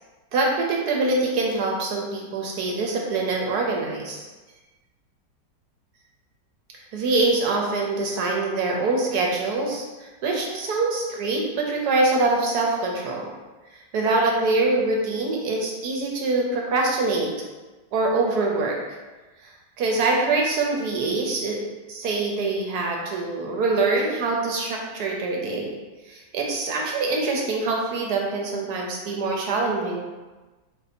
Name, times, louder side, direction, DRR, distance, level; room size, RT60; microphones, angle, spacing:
voice 1, 0.3-4.2 6.9-13.3 13.7-17.3 17.9-18.8 19.4-21.6 21.9-25.8 26.0-30.0, right 3 dB, 70° right, -1 dB, 1.1 m, -24 dB
3.9 x 2.7 x 4.2 m, 1.2 s
omnidirectional pair, 1.9 m